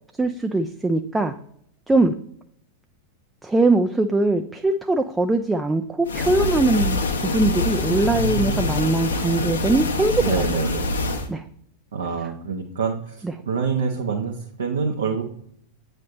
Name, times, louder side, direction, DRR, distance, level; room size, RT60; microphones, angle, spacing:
voice 1, 0.2-1.3 1.9-2.1 3.4-10.4 11.3-11.4 13.2-13.3, right 2 dB, 10° right, 6 dB, 0.3 m, -21 dB
sound 1, 6.1-11.3, left 2 dB, 70° left, 0.8 m, -25 dB
voice 2, 8.0-8.6 10.2-10.9 11.9-13.2 13.4-14.3 14.6-15.2, right 5 dB, 65° right, 1 dB, 0.8 m, -26 dB
8.4 x 3.2 x 4.2 m, 0.69 s
figure-of-eight pair, 90°, 0 cm